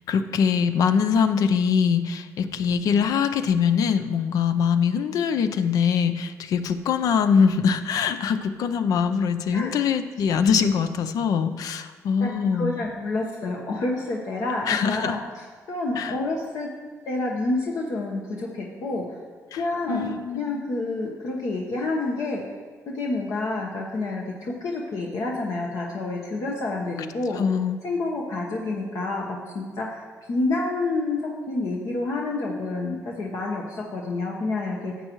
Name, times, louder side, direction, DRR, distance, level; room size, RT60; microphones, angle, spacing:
voice 1, 0.1-12.7 14.7-15.2 16.0-16.1 19.5-20.6 27.3-27.8, left 6 dB, 85° left, 10 dB, 0.5 m, -23 dB
voice 2, 12.2-16.7 17.0-19.0 19.6-22.4 22.9-27.4 27.8-35.0, left 2 dB, 70° left, -2 dB, 1.2 m, -28 dB
12.0 x 7.7 x 3.1 m, 1.5 s
cardioid pair, 95°, 6 cm